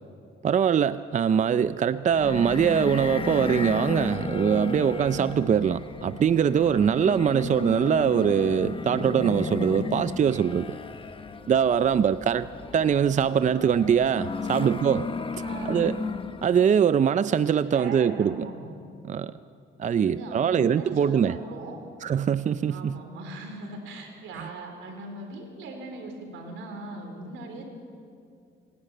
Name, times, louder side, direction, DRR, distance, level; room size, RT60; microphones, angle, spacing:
voice 1, 0.4-10.8 11.5-15.1 15.6-16.0 16.4-18.5 19.0-19.3 19.8-21.3 22.0-23.0, right 8 dB, 40° right, 14 dB, 0.5 m, -23 dB
sound 1, 2.1-16.6, left 4 dB, 25° left, 1.1 m, -34 dB
voice 2, 15.4-15.9 17.6-18.7 19.9-21.8 22.7-27.6, right 2 dB, 85° right, 3 dB, 4.1 m, -39 dB
26.0 x 12.0 x 9.1 m, 2.4 s
cardioid pair, 90°, 20 cm